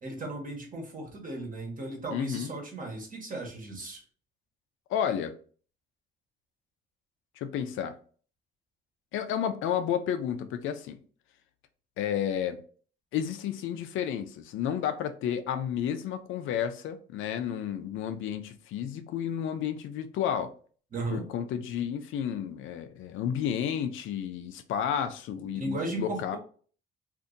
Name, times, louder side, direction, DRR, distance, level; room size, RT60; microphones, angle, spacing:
voice 1, 0.0-4.0 20.9-21.2 25.5-26.4, right 2 dB, 45° right, 1.3 m, -36 dB
voice 2, 2.1-2.5 4.9-5.3 7.4-8.0 9.1-11.0 12.0-12.6 13.1-20.5 21.1-26.4, left 9 dB, 85° left, 0.5 m, -31 dB
2.6 x 2.6 x 3.7 m
cardioid pair, 90°, 20 cm